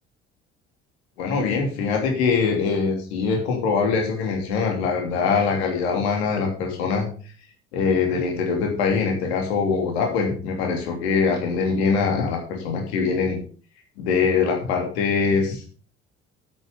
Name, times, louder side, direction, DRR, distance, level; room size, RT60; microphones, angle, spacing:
voice 1, 1.2-7.1 7.7-13.4 14.0-15.6, left 5 dB, 70° left, 2 dB, 3.0 m, -23 dB
9.3 x 8.4 x 5.3 m, 0.40 s
figure-of-eight pair, 50°, 33 cm